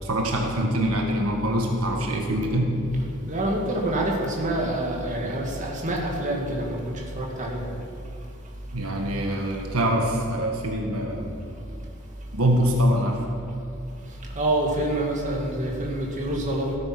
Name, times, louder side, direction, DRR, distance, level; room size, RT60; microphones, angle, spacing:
voice 1, 0.0-2.7 8.7-11.4 12.3-13.2, equal, 80° right, 1 dB, 1.7 m, -24 dB
voice 2, 3.3-7.6 14.4-16.8, right 1 dB, 35° right, -1 dB, 2.1 m, -26 dB
15.5 x 9.0 x 6.1 m, 2.6 s
head